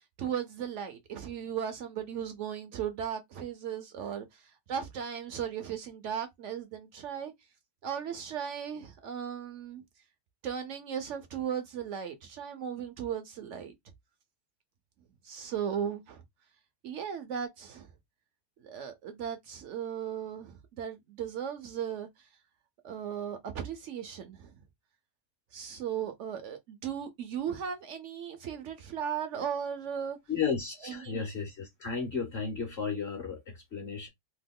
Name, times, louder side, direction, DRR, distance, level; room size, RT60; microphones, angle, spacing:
voice 1, 0.2-4.3 4.7-7.3 7.8-9.8 10.4-13.7 15.2-16.2 16.8-17.9 18.6-22.1 22.8-24.5 25.5-30.2 30.8-31.3, right 8 dB, 75° right, 0.7 m, -36 dB
voice 2, 30.3-34.1, left 5 dB, 55° left, 0.7 m, -34 dB
2.9 x 2.2 x 3.5 m
omnidirectional pair, 1.8 m